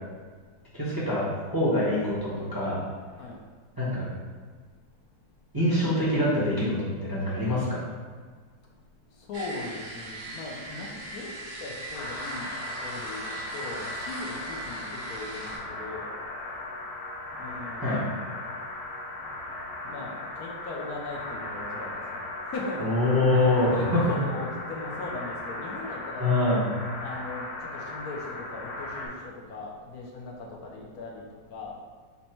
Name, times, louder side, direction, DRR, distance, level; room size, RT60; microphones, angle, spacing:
voice 1, 0.7-2.8 3.8-4.1 5.5-7.9 17.8-18.0 22.8-24.1 26.2-26.7, left 1 dB, 20° right, -9 dB, 0.6 m, -25 dB
voice 2, 9.3-11.3 11.6-12.5 12.8-16.1 17.4-17.9 19.8-22.2 22.5-26.5 27.0-27.5 27.7-31.2 31.5-31.7, left 3 dB, 65° left, -2 dB, 1.0 m, -39 dB
sound 1, 9.3-15.6, right 2 dB, 65° right, 1.4 m, -39 dB
sound 2, 11.9-29.1, left 2 dB, 80° left, 1.7 m, -37 dB
5.4 x 2.1 x 4.4 m, 1.5 s
omnidirectional pair, 2.2 m